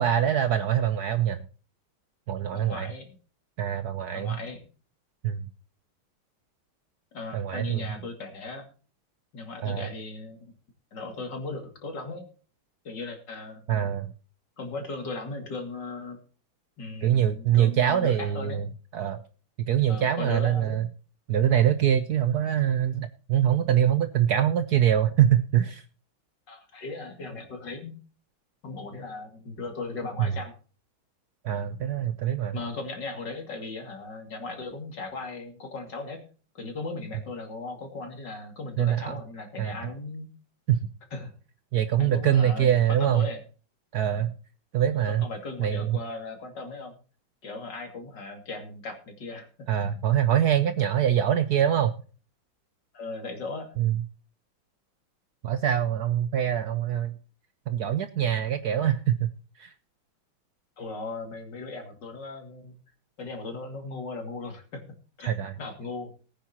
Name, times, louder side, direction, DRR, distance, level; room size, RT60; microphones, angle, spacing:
voice 1, 0.0-1.4 2.3-2.9 3.6-4.3 5.2-5.4 7.3-7.9 9.6-9.9 13.7-14.1 17.0-18.7 18.9-19.2 19.7-20.9 21.3-25.8 30.2-30.3 31.4-32.6 38.8-39.2 39.6-39.7 40.7-40.9 41.7-43.3 43.9-44.3 44.7-45.2 45.6-46.0 49.7-51.9 53.8-54.0 55.4-57.1 57.7-59.3 59.6-59.7 65.2-65.6, right 10 dB, 65° right, 10 dB, 1.0 m, -24 dB
voice 2, 2.5-3.2 4.1-4.6 7.1-8.6 9.3-10.4 10.9-12.3 12.8-13.9 14.6-16.2 16.8-18.6 19.9-20.8 26.5-27.9 28.6-30.6 32.5-36.2 36.5-40.3 41.1-41.3 42.0-43.4 45.1-47.0 47.4-49.7 52.9-53.7 60.8-62.8 63.2-64.8 65.2-65.3 65.6-66.1, left 3 dB, 60° left, 3 dB, 3.1 m, -37 dB
19.5 x 9.3 x 2.9 m, 0.37 s
omnidirectional pair, 2.2 m